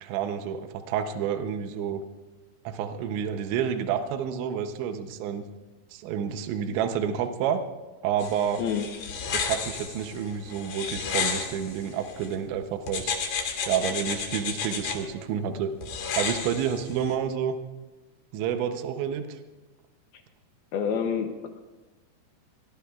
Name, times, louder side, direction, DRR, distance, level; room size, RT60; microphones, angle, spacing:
voice 1, 0.0-2.0 2.6-5.4 5.9-7.6 8.0-8.6 9.3-13.2 13.7-15.7 16.2-17.6 18.3-19.4, right 8 dB, 85° right, 7 dB, 3.1 m, -29 dB
sound 1, 8.2-12.3 12.9-15.0 15.8-17.1, left 6 dB, 60° left, 3.1 m, -32 dB
voice 2, 20.7-21.5, left 7 dB, 75° left, 5 dB, 2.3 m, -27 dB
22.5 x 20.5 x 2.4 m, 1.2 s
omnidirectional pair, 5.2 m